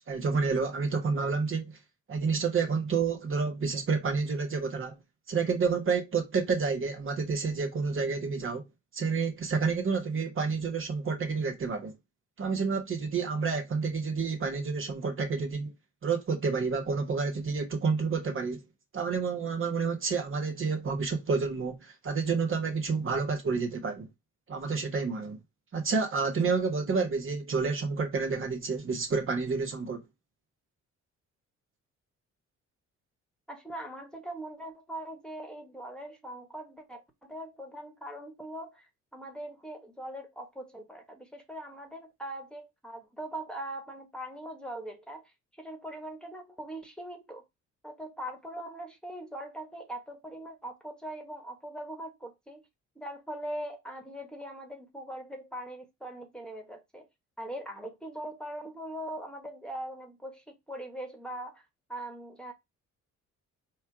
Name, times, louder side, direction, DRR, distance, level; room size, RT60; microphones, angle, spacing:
voice 1, 0.1-1.8 2.1-5.0 5.3-8.6 8.9-11.9 12.4-15.7 16.0-18.6 18.9-24.1 24.5-25.4 25.7-30.0, right 4 dB, 45° right, 1.2 m, -29 dB
voice 2, 33.5-38.9 39.1-45.2 45.6-47.4 47.8-52.6 52.9-57.1 57.4-62.5, right 1 dB, 5° left, 1.3 m, -41 dB
4.5 x 2.3 x 4.6 m
cardioid pair, 90°, 30 cm